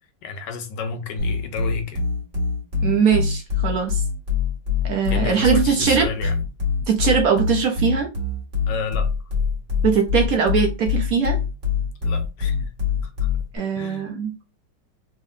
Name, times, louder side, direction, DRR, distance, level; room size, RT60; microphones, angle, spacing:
voice 1, 0.2-2.0 5.1-6.3 8.7-9.1 12.0-12.7 13.8-14.1, left 5 dB, 75° left, 1.3 m, -31 dB
sound 1, 1.2-13.6, left 6 dB, 40° right, 1.9 m, -24 dB
voice 2, 2.8-4.0 4.8-6.3 6.9-8.1 9.8-11.4 13.5-14.3, right 6 dB, 65° right, 0.9 m, -21 dB
3.6 x 3.3 x 2.7 m
omnidirectional pair, 1.9 m